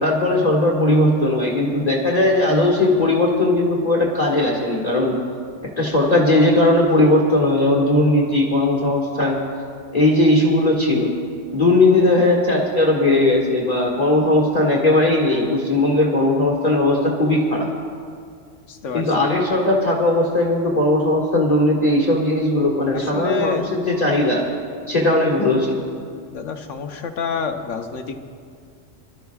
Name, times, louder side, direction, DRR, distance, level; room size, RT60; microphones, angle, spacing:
voice 1, 0.0-5.2 5.8-9.4 9.9-11.1 11.5-17.7 18.9-24.5 24.9-25.8, left 1 dB, 30° left, -3 dB, 1.8 m, -18 dB
voice 2, 18.7-19.0 22.9-23.7 26.3-28.2, left 4 dB, 75° left, 5 dB, 1.2 m, -27 dB
27.5 x 13.0 x 2.4 m, 2.2 s
omnidirectional pair, 1.3 m